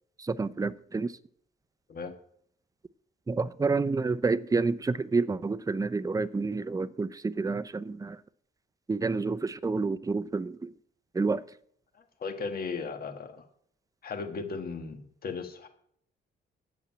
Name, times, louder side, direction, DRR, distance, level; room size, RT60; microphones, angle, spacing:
voice 1, 0.2-1.1 3.3-8.2 8.9-10.7 11.1-11.4, right 4 dB, 15° right, 0.6 m, -29 dB
voice 2, 11.9-13.4 14.0-15.7, left 4 dB, 50° left, 1.5 m, -36 dB
8.2 x 7.3 x 8.7 m
cardioid pair, 90°, 20 cm